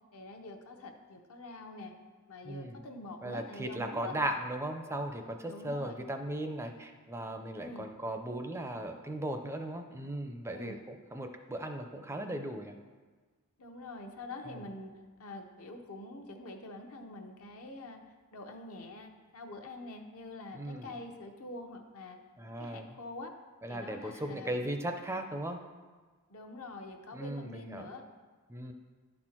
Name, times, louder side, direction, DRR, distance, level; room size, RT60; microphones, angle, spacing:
voice 1, 0.1-1.9 2.3-4.2 5.4-6.0 7.6-7.9 10.5-10.7 13.6-14.9 15.2-18.0 18.3-22.2 22.6-23.3 23.7-24.7 26.3-28.0, left 2 dB, 70° left, 4 dB, 0.9 m, -45 dB
voice 2, 2.4-2.8 3.2-12.7 14.5-14.6 20.5-21.0 22.4-23.0 23.6-25.6 27.1-27.9 28.5-28.7, right 1 dB, 10° right, 6 dB, 0.4 m, -37 dB
11.5 x 4.4 x 4.4 m, 1.4 s
head